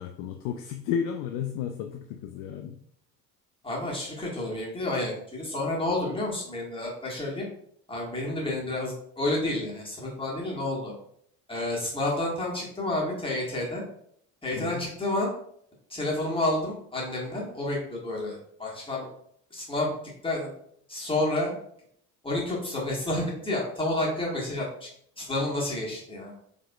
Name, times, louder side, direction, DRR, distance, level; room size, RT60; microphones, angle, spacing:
voice 1, 0.0-2.8 14.6-14.9, left 8 dB, 45° left, 5 dB, 0.4 m, -33 dB
voice 2, 3.6-7.4 7.9-10.9 11.5-13.8 14.4-15.3 15.9-19.1 19.5-19.9 20.2-20.5 20.9-21.5 22.2-24.9 25.2-26.3, left 2 dB, 10° left, -4 dB, 1.6 m, -30 dB
5.1 x 3.5 x 2.3 m, 0.68 s
figure-of-eight pair, 55°, 49 cm